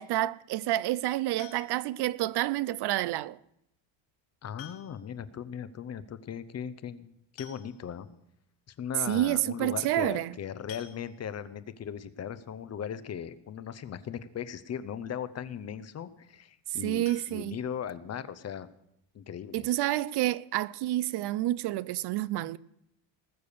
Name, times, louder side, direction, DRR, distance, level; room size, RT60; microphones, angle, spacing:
voice 1, 0.0-3.4 9.1-10.3 16.8-17.6 19.5-22.6, right 15 dB, 60° right, 0.5 m, -29 dB
sound 1, 1.4-2.0 3.5-3.6 4.6-5.2 5.5-5.6 5.9-6.0 7.0-7.1 7.4-8.1 8.6-8.7 9.1-9.3 10.7-11.5 17.0-18.2 18.6-18.7 19.1-19.2 19.6-19.7, left 10 dB, 65° left, 2.1 m, -51 dB
voice 2, 4.4-8.1 8.7-18.7 19.1-19.6, left 8 dB, 35° left, 0.7 m, -38 dB
19.5 x 6.8 x 6.7 m
cardioid pair, 135°, 47 cm